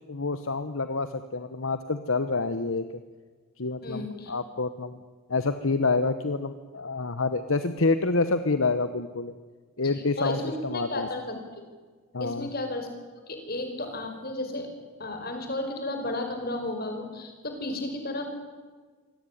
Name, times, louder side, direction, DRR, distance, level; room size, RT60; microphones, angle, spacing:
voice 1, 0.1-2.8 3.6-5.0 5.3-9.3 9.8-11.1 12.1-12.5, left 3 dB, 65° left, 11 dB, 1.1 m, -27 dB
voice 2, 3.8-4.3 9.8-11.6 12.2-12.9 13.3-14.7 15.0-18.2, left 2 dB, 45° left, 5 dB, 5.1 m, -33 dB
25.0 x 18.0 x 10.0 m, 1.5 s
head